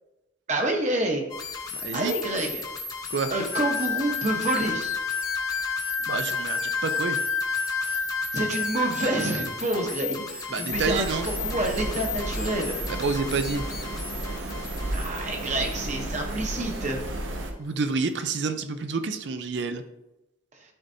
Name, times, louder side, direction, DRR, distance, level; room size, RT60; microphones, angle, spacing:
voice 1, 0.5-1.2 1.9-2.6 3.3-4.9 7.8-8.1 8.3-12.8 14.9-17.0, right 2 dB, 35° right, 2 dB, 1.0 m, -28 dB
sound 1, 1.3-17.2, left 4 dB, 20° left, 0.7 m, -37 dB
voice 2, 1.8-2.1 3.1-3.3 6.1-7.2 10.5-11.3 12.9-13.6 17.6-19.8, right 4 dB, 60° right, 9 dB, 0.5 m, -28 dB
sound 2, 3.5-9.6, left 6 dB, 80° left, 0.7 m, -29 dB
sound 3, 10.7-17.5, right 1 dB, 80° right, 0.8 m, -33 dB
11.0 x 4.0 x 2.7 m, 0.96 s
head